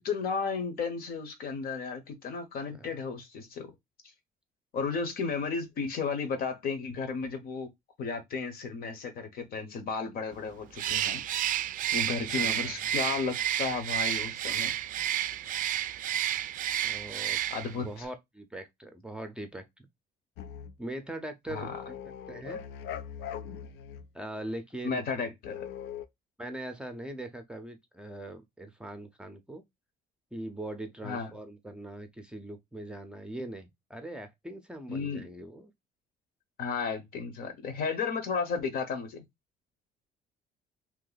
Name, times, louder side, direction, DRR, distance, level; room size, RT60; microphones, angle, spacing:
voice 1, 0.0-3.7 4.7-7.7 8.0-11.2 11.9-14.7 17.5-18.0 21.5-21.7 24.8-25.6 31.0-31.3 34.9-35.3 36.6-39.2, left 5 dB, 65° left, 1.1 m, -33 dB
Bird, 10.7-17.8, right 11 dB, 50° right, 0.4 m, -31 dB
voice 2, 12.3-12.8 16.8-17.4 17.7-19.9 20.8-22.0 22.3-22.6 24.1-25.0 26.4-29.6 30.3-35.7, right 1 dB, 5° right, 0.6 m, -41 dB
sound 1, 20.4-20.7 21.5-24.1 25.4-26.1, left 8 dB, 80° left, 0.5 m, -41 dB
2.9 x 2.6 x 4.0 m
cardioid pair, 110°, 17 cm